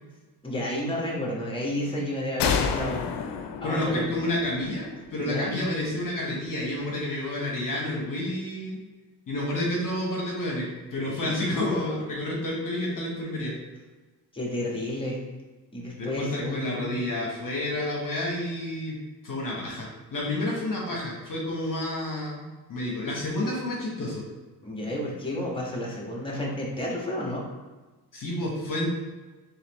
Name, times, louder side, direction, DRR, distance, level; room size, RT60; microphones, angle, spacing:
voice 1, 0.4-3.1 3.6-4.0 5.2-5.5 11.2-11.4 11.7-12.0 14.3-15.2 15.7-16.9 24.6-27.4, left 1 dB, 10° left, -3 dB, 1.4 m, -31 dB
sound 1, 2.4-5.9, left 6 dB, 70° left, 0.6 m, -31 dB
voice 2, 3.6-8.8 9.3-13.5 16.0-19.0 19.2-24.2 28.1-28.9, left 1 dB, 45° left, -3 dB, 1.1 m, -30 dB
4.1 x 3.2 x 3.0 m, 1.3 s
supercardioid pair, 60°, 43 cm